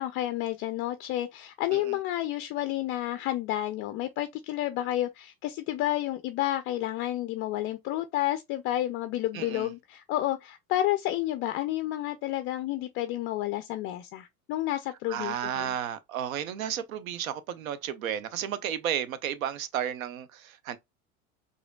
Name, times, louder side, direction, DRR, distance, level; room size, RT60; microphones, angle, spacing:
voice 1, 0.0-15.8, left 14 dB, 30° left, 0.4 m, -30 dB
voice 2, 9.3-9.7 15.1-20.8, right 9 dB, 70° right, 0.8 m, -33 dB
4.8 x 2.8 x 2.2 m
figure-of-eight pair, 80°, 43 cm